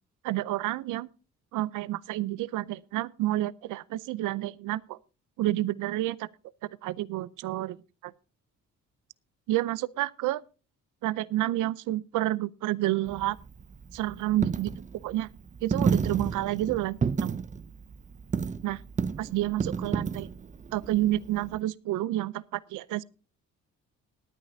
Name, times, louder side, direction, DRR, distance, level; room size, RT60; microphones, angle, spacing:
voice 1, 0.2-1.1 1.5-5.0 5.4-6.3 6.8-7.8 8.0-8.1 9.5-10.4 11.0-13.4 13.9-14.7 15.0-15.3 15.6-17.4 18.6-18.8 19.2-20.3 20.7-23.0, right 15 dB, 85° right, 0.5 m, -29 dB
Coin (dropping), 13.1-21.6, right 5 dB, 25° right, 0.6 m, -31 dB
20.0 x 9.2 x 2.7 m
cardioid pair, 90°, 30 cm